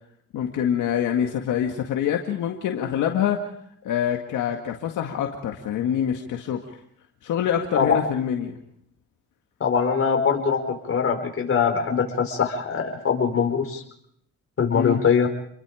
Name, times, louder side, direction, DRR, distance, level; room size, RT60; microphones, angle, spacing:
voice 1, 0.3-3.5 3.8-6.8 7.2-8.6 14.7-15.0, left 9 dB, 80° left, 3 dB, 2.1 m, -25 dB
voice 2, 9.6-13.8 14.6-15.3, left 6 dB, 45° left, 4 dB, 4.6 m, -22 dB
28.5 x 22.5 x 5.1 m, 0.71 s
cardioid pair, 90°, 30 cm